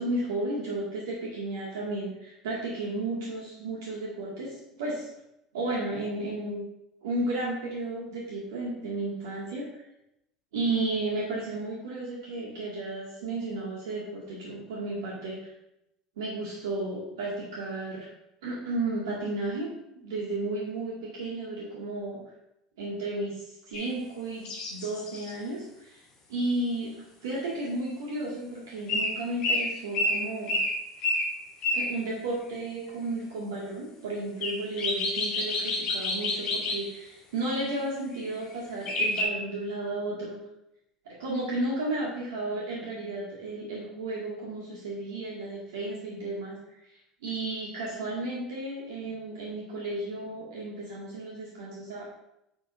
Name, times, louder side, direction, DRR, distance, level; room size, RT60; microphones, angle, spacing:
voice 1, 0.0-5.1 5.5-6.6 7.0-9.8 10.5-15.5 16.2-18.1 18.4-19.7 19.9-22.2 22.8-26.0 26.3-27.0 27.2-30.6 31.7-40.4 41.1-46.6 47.2-52.0, right 2 dB, 70° right, -5 dB, 2.1 m, -33 dB
sound 1, 23.7-23.9 24.4-25.3 28.9-29.2 29.4-31.9 34.4-36.8 38.9-39.2, left 2 dB, 50° left, 3.0 m, -28 dB
11.0 x 6.7 x 2.7 m, 0.84 s
figure-of-eight pair, 70°, 2 cm